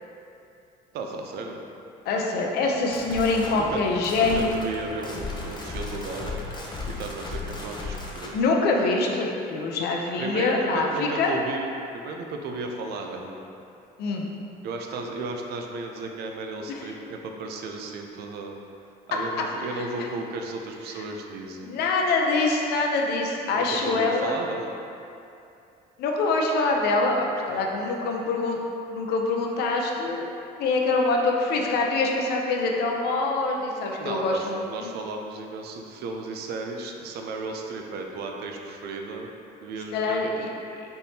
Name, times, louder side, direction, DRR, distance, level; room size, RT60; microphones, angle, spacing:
voice 1, 0.9-1.6 3.6-3.8 4.1-6.4 6.9-8.4 10.2-13.4 14.6-18.6 19.1-21.7 23.5-24.7 27.5-27.7 34.0-39.3 39.6-40.3, right 3 dB, 70° right, 2 dB, 0.5 m, -34 dB
voice 2, 2.1-4.7 8.3-11.3 14.0-14.3 16.7-16.9 19.8-20.1 21.6-24.3 26.0-27.2 27.5-28.6 28.9-30.3 30.6-34.9 39.9-40.5, left 3 dB, 70° left, 0 dB, 0.6 m, -25 dB
sound 1, 2.7-8.4, left 3 dB, 25° left, 0.6 m, -36 dB
4.3 x 3.4 x 2.7 m, 2.7 s
cardioid pair, 110°, 17 cm